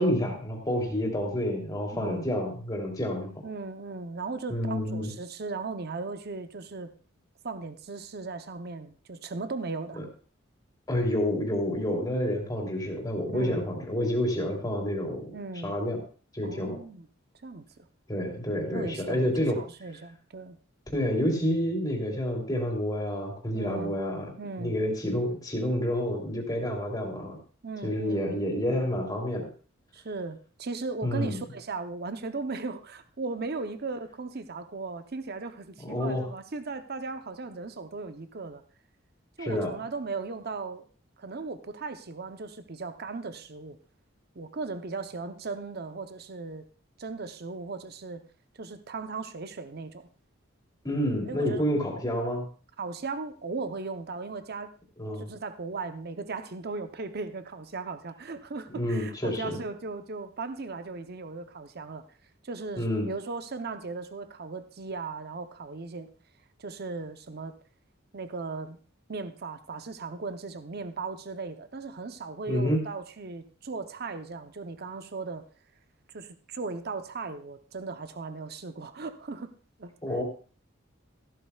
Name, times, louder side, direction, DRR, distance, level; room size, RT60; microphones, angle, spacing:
voice 1, 0.0-3.3 4.5-5.1 9.9-10.0 10.9-15.4 15.6-16.0 16.3-16.8 18.1-19.6 20.9-24.3 24.6-27.4 27.8-29.5 31.0-31.4 35.8-36.3 39.4-39.8 50.8-52.5 55.0-55.3 58.7-59.6 62.8-63.1 72.5-72.8 80.0-80.2, equal, 20° left, 0 dB, 3.1 m, -29 dB
voice 2, 1.9-2.3 3.4-6.9 7.4-10.0 13.3-13.7 15.3-15.8 16.4-17.1 17.4-17.7 18.7-20.6 23.5-24.0 24.4-24.8 27.6-28.4 29.9-38.6 39.4-40.8 41.2-43.8 44.4-46.6 47.0-48.3 48.6-50.1 51.2-51.6 52.8-54.7 55.2-62.0 62.4-66.1 66.6-67.6 68.1-68.8 69.1-75.4 76.1-79.5 79.8-79.9, right 3 dB, 50° right, 10 dB, 0.8 m, -37 dB
14.5 x 12.5 x 2.4 m, 0.39 s
head